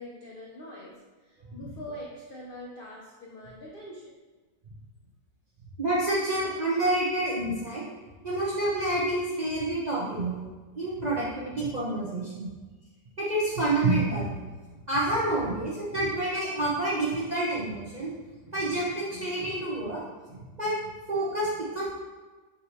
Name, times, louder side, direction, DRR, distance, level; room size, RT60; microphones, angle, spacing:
voice 1, 0.0-4.1 12.3-12.5, left 1 dB, 60° left, -5 dB, 0.5 m, -43 dB
voice 2, 5.8-7.8 8.2-10.4 10.8-12.5 13.2-14.3 14.7-18.1 18.5-20.0 20.3-20.7 21.1-21.9, right 2 dB, 40° right, -8 dB, 0.6 m, -28 dB
3.9 x 2.8 x 4.4 m, 1.3 s
omnidirectional pair, 1.7 m